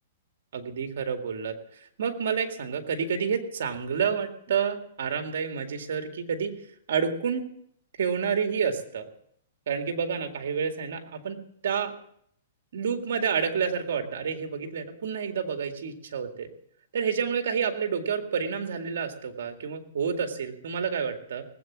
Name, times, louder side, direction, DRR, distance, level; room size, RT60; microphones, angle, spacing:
voice 1, 0.5-1.5 2.0-6.5 6.9-7.5 8.0-9.1 9.7-11.9 12.7-16.5 16.9-21.4, right 6 dB, 75° right, 6 dB, 2.1 m, -29 dB
19.0 x 8.4 x 7.5 m, 0.69 s
hypercardioid pair, 150°, 0 cm